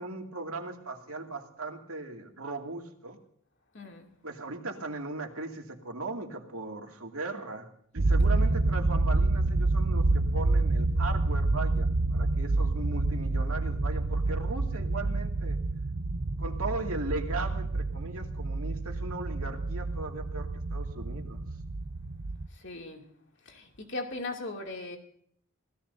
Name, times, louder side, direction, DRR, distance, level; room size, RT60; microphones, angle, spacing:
voice 1, 0.0-3.2 4.2-7.7 7.9-15.6 16.4-21.4, right 3 dB, 75° right, 2.4 m, -38 dB
voice 2, 3.7-4.1 8.2-8.6 22.5-23.1 23.4-25.0, left 2 dB, 55° left, 2.6 m, -39 dB
sound 1, 8.0-22.5, right 2 dB, 50° right, 0.7 m, -28 dB
26.5 x 16.5 x 2.7 m
head